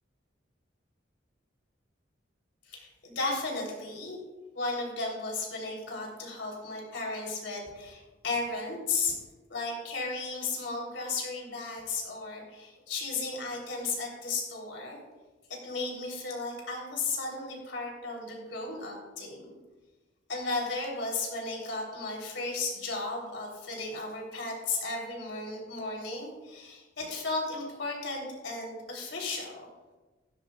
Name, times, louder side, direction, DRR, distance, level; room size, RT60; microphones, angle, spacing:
voice 1, 2.7-4.2 4.5-9.1 9.5-15.0 15.5-19.6 20.3-29.7, left 3 dB, 75° left, -1 dB, 3.5 m, -35 dB
15.5 x 13.0 x 2.4 m, 1.2 s
head